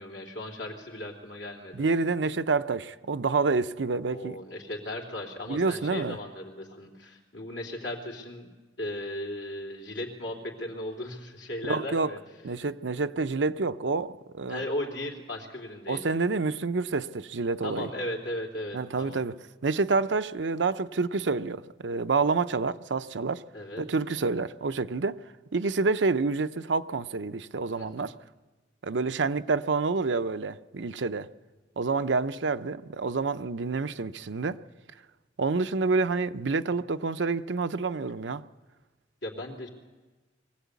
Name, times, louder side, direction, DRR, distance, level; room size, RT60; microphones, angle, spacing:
voice 1, 0.0-1.8 4.1-8.5 8.8-12.2 12.5-12.6 14.5-16.2 17.6-19.2 23.5-23.9 27.8-28.1 39.2-39.7, left 1 dB, 80° left, 3.4 m, -36 dB
voice 2, 1.8-4.4 5.5-6.2 11.6-12.1 12.4-14.6 15.9-17.9 18.7-19.3 19.6-23.4 23.8-25.2 25.5-28.1 28.8-31.3 31.8-34.6 35.4-38.4, right 4 dB, 80° right, 0.7 m, -28 dB
23.0 x 17.0 x 8.3 m
head